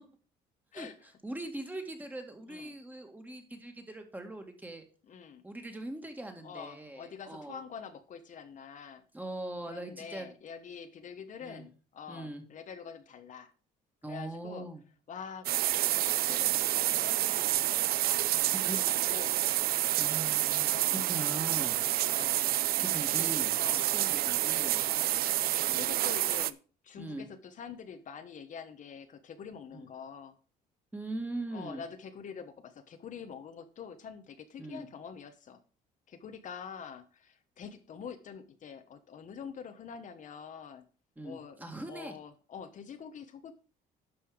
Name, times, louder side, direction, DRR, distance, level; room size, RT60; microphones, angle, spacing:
voice 1, 1.2-4.9 5.4-7.6 9.1-10.3 11.4-11.7 12.1-12.4 14.0-14.8 18.5-18.8 20.0-21.8 22.8-24.8 25.6-25.8 27.0-27.3 29.7-29.9 30.9-31.8 34.6-34.8 41.2-42.2, right 2 dB, 10° right, 5 dB, 2.0 m, -41 dB
voice 2, 5.1-5.4 6.4-9.0 9.7-13.5 14.1-14.7 15.1-19.4 20.7-21.1 22.1-22.4 23.2-23.3 23.5-23.9 24.8-25.1 25.4-26.6 26.8-30.4 31.5-35.6 36.1-40.8 41.2-43.5, left 7 dB, 50° left, 8 dB, 1.1 m, -46 dB
sound 1, 15.4-26.5, right 14 dB, 65° right, 0.5 m, -28 dB
11.5 x 5.5 x 5.0 m, 0.38 s
cardioid pair, 110°, 17 cm